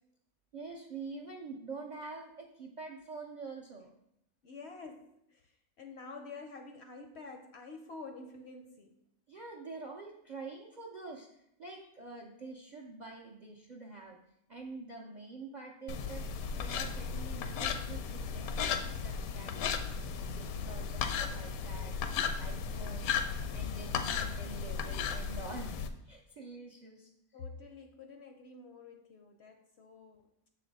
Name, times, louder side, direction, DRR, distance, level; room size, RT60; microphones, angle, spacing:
voice 1, 0.5-3.9 9.3-14.2 14.5-16.3 16.5-22.0 22.4-23.2 23.5-25.8 26.0-27.1, right 3 dB, 60° right, 0 dB, 0.4 m, -46 dB
voice 2, 4.4-9.0 27.3-30.3, left 3 dB, 65° left, 5 dB, 0.7 m, -48 dB
sound 1, 15.9-25.9, left 6 dB, 80° left, 1.0 m, -35 dB
6.7 x 4.2 x 4.0 m, 0.77 s
omnidirectional pair, 1.5 m